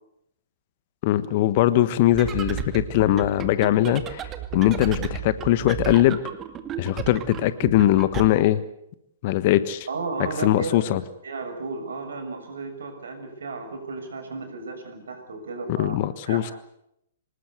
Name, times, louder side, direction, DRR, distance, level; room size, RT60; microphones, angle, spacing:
voice 1, 1.0-4.2 4.5-6.2 6.8-8.6 9.2-9.9 10.4-11.0 15.8-16.5, left 13 dB, 40° left, 15 dB, 1.4 m, -21 dB
sound 1, 2.1-8.3, right 10 dB, 20° right, 2.1 m, -34 dB
voice 2, 9.9-16.0 16.3-16.5, right 4 dB, 65° right, 7 dB, 6.4 m, -34 dB
25.5 x 20.0 x 8.2 m, 0.80 s
figure-of-eight pair, 115°, 0 cm